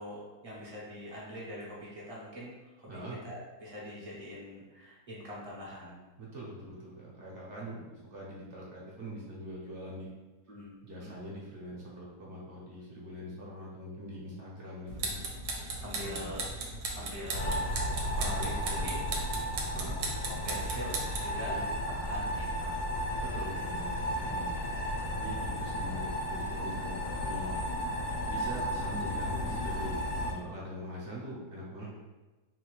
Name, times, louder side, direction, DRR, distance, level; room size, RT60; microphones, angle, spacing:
voice 1, 0.0-6.0 10.5-10.7 11.0-11.1 15.7-16.4 16.8-17.6 18.2-19.0 20.4-21.6 22.0-22.8 31.8-31.9, equal, 30° right, -6 dB, 0.7 m, -43 dB
voice 2, 2.9-3.2 6.2-10.1 10.8-15.1 16.0-16.3 18.2-18.9 19.7-20.0 21.5-21.7 23.2-24.5 25.1-27.6 28.3-31.9, equal, 50° right, -5 dB, 1.1 m, -43 dB
sound 1, 14.9-21.4, right 3 dB, 75° right, 1.2 m, -37 dB
sound 2, 17.3-30.3, equal, 60° left, 1.1 m, -34 dB
4.0 x 2.7 x 3.1 m, 1.2 s
omnidirectional pair, 1.8 m